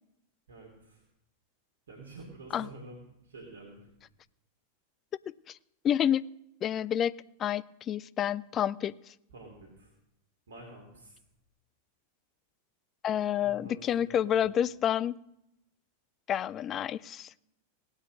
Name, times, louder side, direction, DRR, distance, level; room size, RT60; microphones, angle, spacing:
voice 1, 0.5-1.1 1.9-3.9 9.3-9.9 10.5-11.2 13.4-14.5, right 2 dB, 65° right, -1 dB, 2.8 m, -49 dB
voice 2, 5.8-6.3 6.6-7.1 7.4-9.1 13.0-15.2 16.3-17.3, left 10 dB, 30° left, 19 dB, 0.4 m, -29 dB
17.5 x 8.7 x 6.3 m, 0.84 s
figure-of-eight pair, 90°, 0 cm